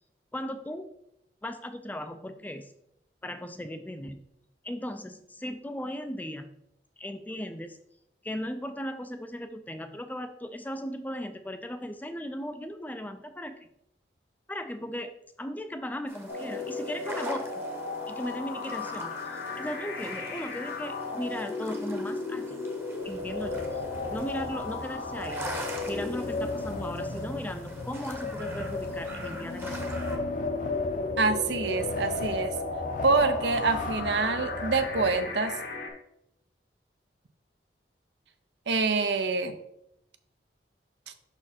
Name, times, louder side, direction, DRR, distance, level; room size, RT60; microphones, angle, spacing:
voice 1, 0.3-0.9 1.4-2.7 3.2-4.2 4.6-6.5 7.0-7.8 8.2-13.7 14.5-15.1 15.4-17.7 18.1-22.6 23.0-23.8 24.1-25.5 25.9-29.9, equal, 10° left, 8 dB, 0.3 m, -37 dB
sound 1, 16.1-30.2, right 1 dB, 15° right, 0.8 m, -44 dB
sound 2, 16.3-35.9, left 3 dB, 80° left, 1.1 m, -36 dB
Wind, 23.0-35.7, left 2 dB, 45° left, 0.6 m, -35 dB
voice 2, 31.2-32.6 33.0-35.6 38.7-39.6, right 4 dB, 75° right, 9 dB, 0.6 m, -26 dB
5.8 x 4.4 x 4.2 m, 0.78 s
head